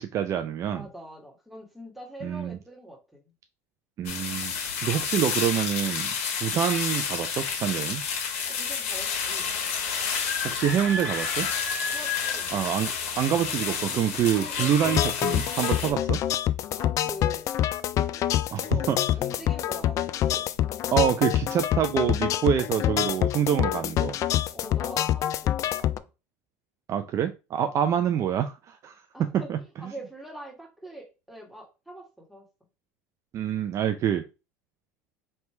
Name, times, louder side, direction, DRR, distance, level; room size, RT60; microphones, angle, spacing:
voice 1, 0.0-0.9 2.2-2.6 4.0-4.5 4.8-6.1 6.4-8.0 10.4-11.5 12.5-16.2 18.5-19.0 20.9-24.2 26.9-29.6 33.3-34.2, right 9 dB, 40° right, 8 dB, 0.4 m, -26 dB
voice 2, 0.7-3.3 8.5-9.5 11.9-12.6 14.4-14.7 16.8-17.5 17.9-18.2 18.6-18.9 19.2-20.5 24.5-26.1 27.7-27.8 29.1-32.5, right 1 dB, ahead, -1 dB, 1.7 m, -43 dB
sound 1, 4.1-15.9, left 6 dB, 80° left, 1.2 m, -30 dB
sound 2, 14.8-26.0, left 12 dB, 45° left, 0.3 m, -26 dB
3.3 x 2.8 x 4.3 m, 0.29 s
supercardioid pair, 105°, 8 cm